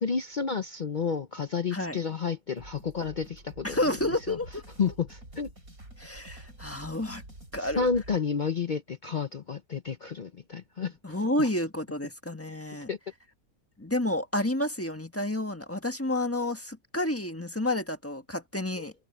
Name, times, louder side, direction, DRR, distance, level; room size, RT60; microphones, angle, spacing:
voice 1, 0.0-3.9 4.3-4.4 4.8-5.5 7.6-10.9 11.4-11.5 12.9-13.0 18.8-18.9, left 5 dB, 55° left, 0.5 m, -31 dB
sound 1, 2.6-8.2, right 1 dB, 65° right, 7.7 m, -48 dB
voice 2, 3.6-4.6 6.0-7.2 7.5-7.9 11.0-12.9 13.8-18.9, left 1 dB, 10° left, 1.3 m, -30 dB
open air
omnidirectional pair, 1.6 m